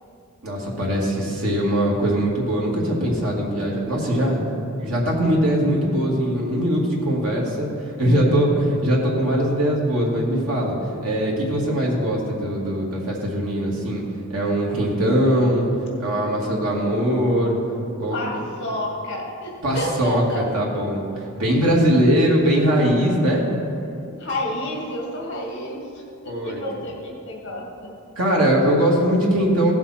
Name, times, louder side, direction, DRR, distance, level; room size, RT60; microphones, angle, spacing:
voice 1, 0.4-4.5 4.8-7.7 8.0-10.8 11.0-14.0 14.3-15.7 16.0-17.6 18.0-18.2 19.6-21.0 21.3-23.4 26.3-26.6 28.2-29.7, equal, 80° right, -3 dB, 2.3 m, -21 dB
voice 2, 18.1-20.4 24.2-27.9, left 1 dB, 55° left, -2 dB, 2.1 m, -30 dB
16.5 x 7.2 x 4.4 m, 2.7 s
head